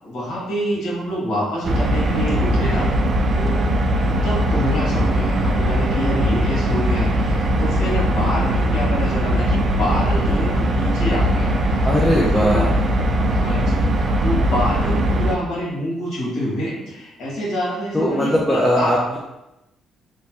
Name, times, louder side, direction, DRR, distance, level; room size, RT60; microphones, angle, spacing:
voice 1, 0.0-2.9 3.3-3.6 4.0-11.9 12.1-12.7 13.2-18.9, equal, 70° left, -6 dB, 1.5 m, -26 dB
sound 1, 1.6-15.4, right 1 dB, 50° right, 0.3 m, -20 dB
voice 2, 11.8-12.8 17.9-19.2, equal, 15° left, -4 dB, 0.5 m, -19 dB
3.0 x 2.1 x 2.9 m, 0.94 s
cardioid pair, 85°, 0 cm